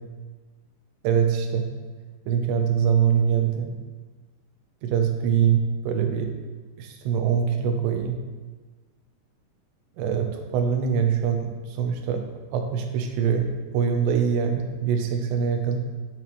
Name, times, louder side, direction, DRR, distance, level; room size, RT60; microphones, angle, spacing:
voice 1, 1.0-1.7 2.3-3.8 4.8-6.3 6.8-8.2 10.0-12.2 12.5-15.8, right 7 dB, 90° right, 5 dB, 3.0 m, -23 dB
9.9 x 6.8 x 3.1 m, 1.3 s
omnidirectional pair, 4.9 m